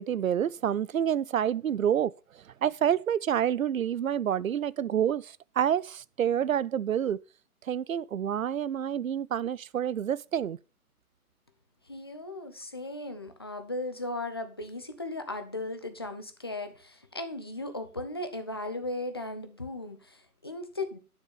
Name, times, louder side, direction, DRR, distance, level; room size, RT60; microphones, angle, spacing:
voice 1, 0.0-2.1 2.6-7.2 7.7-10.6, right 9 dB, 65° right, 0.5 m, -28 dB
voice 2, 11.9-21.0, left 2 dB, 20° left, 0.5 m, -37 dB
9.7 x 6.1 x 5.4 m
figure-of-eight pair, 130°, 45 cm